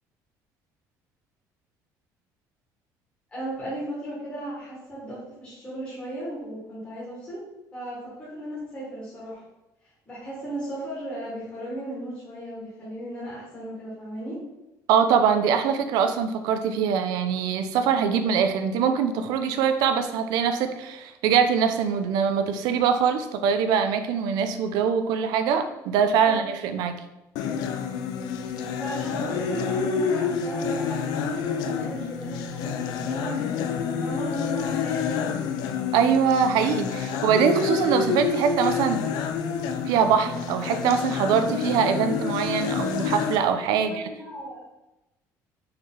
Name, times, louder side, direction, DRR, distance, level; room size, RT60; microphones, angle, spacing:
voice 1, 3.3-7.4 7.7-9.4 10.1-14.4 26.2-26.4 27.5-27.6 28.7-33.4 33.7-35.3 42.6-42.8 43.8-44.7, right 1 dB, 15° left, -9 dB, 1.5 m, -36 dB
voice 2, 14.9-26.9 35.9-39.0 39.9-44.1, right 7 dB, 85° right, 8 dB, 0.5 m, -23 dB
sound 1, 27.4-43.4, left 6 dB, 85° left, 0.4 m, -28 dB
4.4 x 3.2 x 3.7 m, 0.95 s
cardioid pair, 170°, 7 cm